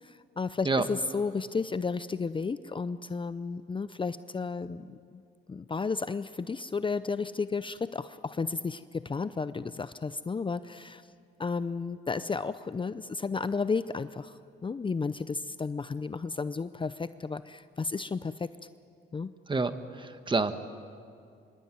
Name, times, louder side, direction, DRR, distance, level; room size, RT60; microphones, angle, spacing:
voice 1, 0.0-5.0 5.5-11.1 11.4-18.5 19.1-19.3, left 4 dB, 25° left, 13 dB, 0.6 m, -33 dB
voice 2, 19.5-20.5, right 3 dB, 25° right, 10 dB, 1.6 m, -28 dB
25.0 x 23.5 x 9.3 m, 2.4 s
cardioid pair, 90°, 20 cm